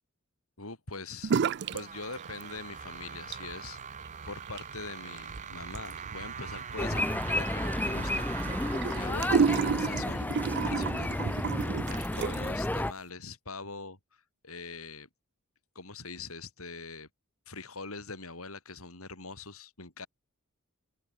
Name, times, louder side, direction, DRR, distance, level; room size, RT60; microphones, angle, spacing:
voice 1, 0.6-1.3 1.7-3.8 4.2-8.3 8.6-14.0 14.4-15.1 15.7-17.1 17.5-20.1, left 3 dB, 75° left, 6.2 m, -43 dB
sound 1, 1.2-12.2, right 6 dB, 35° right, 1.1 m, -44 dB
sound 2, 1.2-1.8 2.1-2.8 3.1-12.6, right 5 dB, 55° right, 0.4 m, -32 dB
sound 3, 6.8-12.9, left 1 dB, 10° left, 0.5 m, -32 dB
open air
head